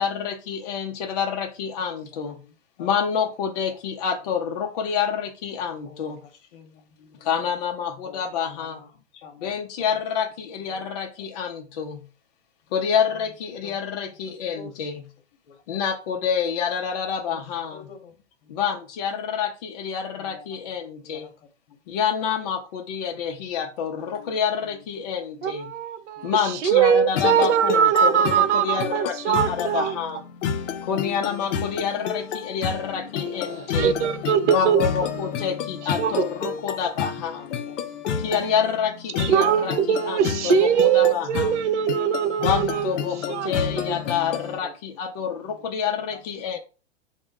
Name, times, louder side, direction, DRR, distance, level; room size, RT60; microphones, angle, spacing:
voice 1, 0.0-2.4 2.8-6.2 7.2-8.8 9.4-12.1 12.7-15.1 15.7-17.9 18.5-21.3 21.9-25.7 26.2-30.2 30.8-33.9 34.5-37.5 38.2-41.6 42.4-46.6, left 7 dB, 35° left, 0.4 m, -28 dB
voice 2, 2.1-2.9 3.7-3.8 5.8-7.5 8.0-9.6 9.9-10.0 10.6-10.9 11.2-11.3 12.9-13.0 13.6-13.8 14.5-14.9 15.4-15.6 17.3-18.1 18.4-18.6 20.2-20.6 21.0-21.3 21.7-21.8 24.0-24.8 25.3-25.8 26.2-26.4 32.8-34.0 37.3-38.4 40.5-40.6 40.9-41.1 41.8-42.0 42.3-42.4 44.6-44.7 45.2-45.7 46.1-46.2, left 6 dB, 55° left, 0.9 m, -48 dB
voice 3, 25.4-26.4 26.6-30.0 33.3-34.8 35.1-35.5 36.0-36.5 39.2-42.9 43.3-44.0, right 8 dB, 75° right, 0.5 m, -22 dB
sound 1, 27.1-44.6, left 7 dB, 85° left, 0.5 m, -30 dB
3.5 x 2.1 x 3.4 m
hypercardioid pair, 145°, 35 cm